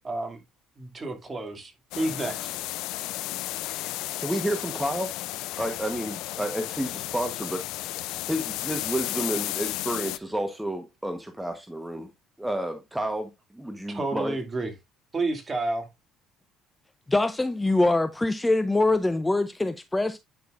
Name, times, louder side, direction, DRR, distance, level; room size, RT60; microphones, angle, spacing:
voice 1, 0.0-0.4 0.8-2.5 13.9-14.7 15.1-15.9, right 2 dB, 25° right, 2.3 m, -30 dB
sound 1, 1.9-10.2, left 17 dB, 80° left, 0.4 m, -33 dB
voice 2, 4.2-5.1 5.6-7.6 8.3-12.1 12.4-14.4, right 1 dB, 5° right, 1.1 m, -30 dB
voice 3, 17.1-20.2, left 2 dB, 10° left, 0.5 m, -23 dB
10.0 x 6.0 x 2.5 m
cardioid pair, 100°, 0 cm